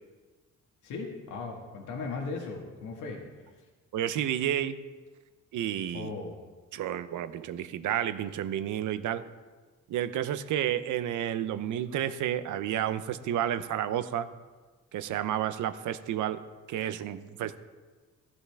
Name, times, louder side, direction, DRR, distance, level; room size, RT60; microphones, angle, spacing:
voice 1, 0.8-3.2 5.9-6.4, left 4 dB, 85° left, 1 dB, 1.8 m, -37 dB
voice 2, 3.9-4.8 5.5-6.1 6.7-9.2 9.9-14.3 14.9-16.4 16.7-17.6, right 11 dB, 75° right, 12 dB, 0.8 m, -31 dB
15.0 x 11.5 x 3.5 m, 1.4 s
cardioid pair, 90°, 30 cm